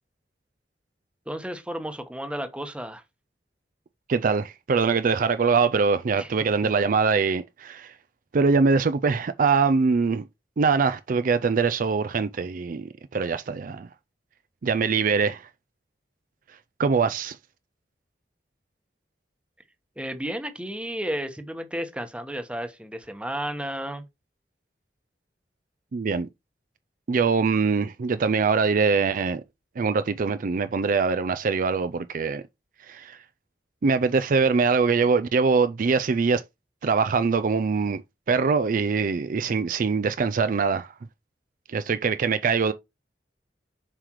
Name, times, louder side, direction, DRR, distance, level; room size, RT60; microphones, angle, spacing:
voice 1, 1.3-3.0 6.2-6.3 6.6-6.7 20.0-24.0, equal, 5° right, 1.0 m, -33 dB
voice 2, 4.1-7.9 8.3-10.3 10.6-13.9 14.6-15.4 16.8-17.4 25.9-26.3 27.1-29.4 29.8-32.4 32.9-33.2 33.8-36.4 36.8-38.0 38.3-40.9 41.7-42.7, right 5 dB, 50° right, 0.4 m, -23 dB
7.4 x 4.9 x 3.0 m
head